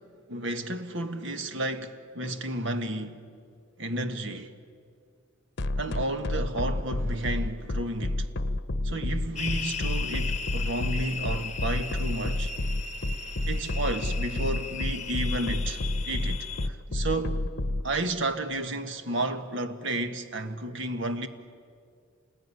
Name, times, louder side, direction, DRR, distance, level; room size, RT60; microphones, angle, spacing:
voice 1, 0.3-3.2 3.8-4.5 5.8-8.2 8.8-12.5 13.5-17.4 17.8-21.3, right 2 dB, 70° right, 1.7 m, -32 dB
sound 1, 5.6-17.8, left 1 dB, 60° left, 0.9 m, -29 dB
sound 2, 9.3-16.7, left 6 dB, 35° left, 1.2 m, -37 dB
28.0 x 20.5 x 9.8 m
head